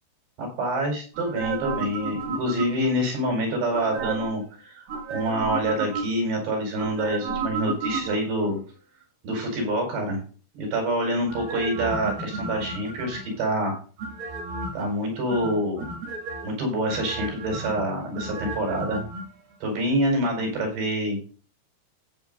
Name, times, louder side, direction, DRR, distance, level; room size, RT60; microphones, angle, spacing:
voice 1, 0.4-8.6 9.2-10.2 10.6-13.8 14.7-15.8 16.4-19.1 19.6-21.2, right 1 dB, 75° right, 1 dB, 6.9 m, -26 dB
sound 1, 1.1-3.0 3.7-4.4 4.9-6.3 6.8-8.5 11.3-13.4 14.0-14.9 15.3-16.4 16.9-19.2 19.5-19.6, right 4 dB, 55° right, 3.7 m, -32 dB
15.0 x 8.7 x 2.7 m, 0.39 s
omnidirectional pair, 4.9 m